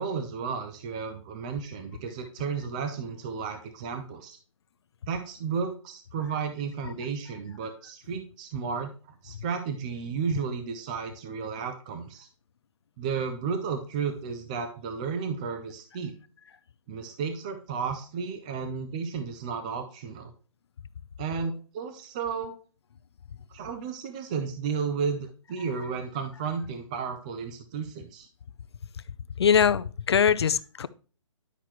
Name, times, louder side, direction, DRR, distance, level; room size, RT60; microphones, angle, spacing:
voice 1, 0.0-4.4 5.1-8.9 9.2-12.3 13.0-16.1 16.9-20.3 21.2-22.5 23.5-28.3, right 6 dB, 15° right, 0.4 m, -33 dB
voice 2, 29.4-30.9, left 7 dB, 55° left, 0.5 m, -22 dB
10.0 x 5.9 x 3.0 m
hypercardioid pair, 165°, 17 cm